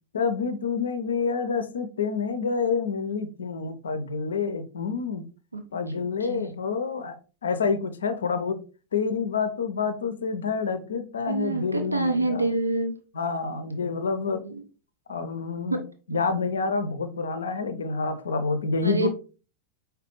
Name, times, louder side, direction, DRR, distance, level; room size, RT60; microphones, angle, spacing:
voice 1, 0.1-5.2 5.7-7.2 7.4-8.6 8.9-12.5 13.1-14.4 15.1-15.8 16.1-19.1, left 5 dB, 70° left, 10 dB, 0.5 m, -28 dB
voice 2, 11.3-12.9 14.4-14.6 15.7-15.8 18.8-19.1, right 2 dB, 85° right, 5 dB, 0.6 m, -26 dB
4.8 x 3.3 x 3.0 m, 0.36 s
figure-of-eight pair, 90°, 0 cm